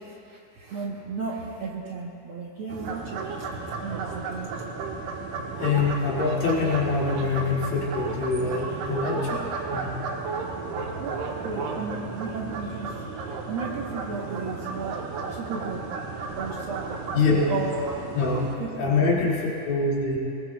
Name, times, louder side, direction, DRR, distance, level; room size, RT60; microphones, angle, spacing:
voice 1, 0.0-3.5 3.8-4.5 10.9-12.9 13.5-15.0 15.3-15.8 16.3-17.0 17.5-17.8 18.6-18.8, right 4 dB, 70° right, -2 dB, 1.3 m, -34 dB
sound 1, 2.7-18.6, right 4 dB, 85° right, 2.8 m, -33 dB
voice 2, 5.6-10.0 17.1-17.5 18.1-20.2, left 3 dB, 85° left, -5 dB, 4.0 m, -25 dB
21.5 x 19.5 x 2.3 m, 2.6 s
omnidirectional pair, 3.9 m